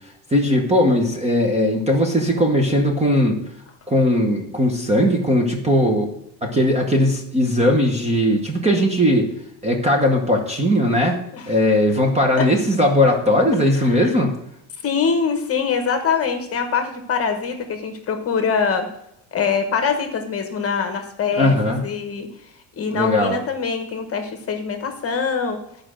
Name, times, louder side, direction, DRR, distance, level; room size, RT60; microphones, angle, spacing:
voice 1, 0.3-3.4 3.9-6.1 6.4-9.3 9.6-11.2 11.5-14.3 21.3-21.8 22.9-23.4, left 1 dB, 15° right, 2 dB, 0.9 m, -18 dB
voice 2, 13.5-14.1 14.8-18.9 19.3-22.3 22.8-25.6, left 6 dB, 30° left, 6 dB, 1.1 m, -23 dB
10.5 x 5.1 x 6.3 m, 0.76 s
cardioid pair, 160°, 48 cm